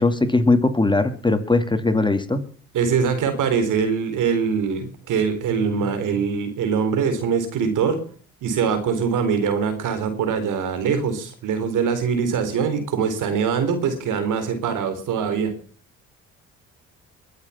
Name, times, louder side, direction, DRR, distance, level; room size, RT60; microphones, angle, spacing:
voice 1, 0.0-2.4, left 2 dB, 15° left, 8 dB, 2.3 m, -19 dB
voice 2, 2.7-8.0 8.4-15.5, right 6 dB, 70° right, 9 dB, 4.1 m, -23 dB
22.0 x 8.1 x 5.8 m, 0.42 s
supercardioid pair, 65°, 32 cm